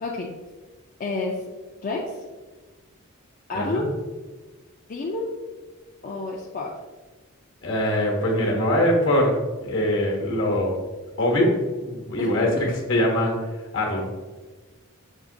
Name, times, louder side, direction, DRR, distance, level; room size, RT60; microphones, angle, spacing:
voice 1, 1.0-1.4 1.8-2.2 3.5-3.9 4.9-5.3 6.0-6.7 12.2-12.7, left 3 dB, 40° left, -2 dB, 0.4 m, -29 dB
voice 2, 3.5-3.9 7.6-9.4 9.7-10.7 11.2-11.5 11.8-13.3 13.7-14.0, left 1 dB, 65° left, 0 dB, 1.0 m, -22 dB
6.2 x 2.9 x 2.6 m, 1.3 s
head